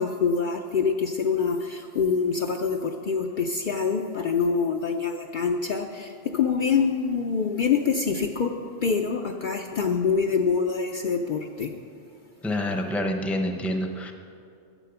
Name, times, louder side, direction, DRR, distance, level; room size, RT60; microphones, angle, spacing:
voice 1, 0.0-8.5 8.8-11.7 12.7-12.8, left 5 dB, 55° left, 3 dB, 0.6 m, -25 dB
voice 2, 12.4-14.1, left 1 dB, ahead, 4 dB, 0.7 m, -27 dB
10.0 x 7.5 x 6.9 m, 2.4 s
omnidirectional pair, 1.1 m